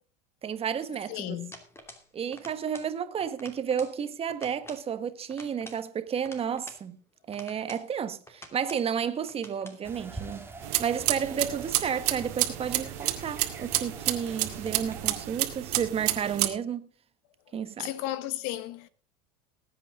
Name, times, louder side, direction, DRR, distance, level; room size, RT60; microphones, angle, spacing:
voice 1, 0.4-1.4 2.1-7.0 7.3-10.5 10.8-16.9 17.5-17.9, right 8 dB, 30° right, 1.4 m, -32 dB
voice 2, 1.1-1.5 17.8-18.9, left 14 dB, 65° left, 1.4 m, -34 dB
sound 1, 1.5-2.1 2.3-2.9 3.2-4.0 4.3-4.9 5.3-6.8 7.3-7.9 8.3-8.9 9.3-9.8, left 1 dB, 10° left, 2.7 m, -48 dB
sound 2, 9.8-15.3, right 3 dB, 10° right, 2.3 m, -45 dB
sound 3, 10.6-16.5, right 16 dB, 70° right, 2.0 m, -30 dB
20.0 x 8.6 x 3.7 m
supercardioid pair, 110°, 21 cm